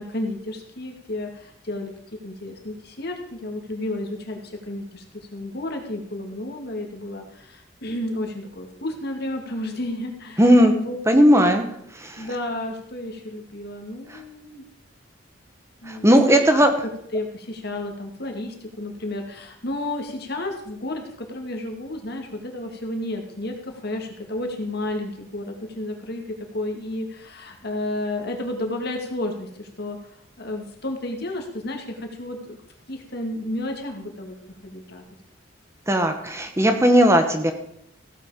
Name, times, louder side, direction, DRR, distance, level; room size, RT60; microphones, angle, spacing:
voice 1, 0.0-1.9 2.2-11.0 11.3-11.4 12.2-14.7 15.8-16.7 17.1-32.6 32.9-34.3 34.6-35.0, left 1 dB, 55° left, 3 dB, 2.4 m, -32 dB
voice 2, 10.4-10.7 11.1-11.6 12.0-12.3 15.9-16.7 35.9-37.5, equal, 15° right, 6 dB, 1.0 m, -17 dB
15.5 x 8.3 x 5.0 m, 0.72 s
head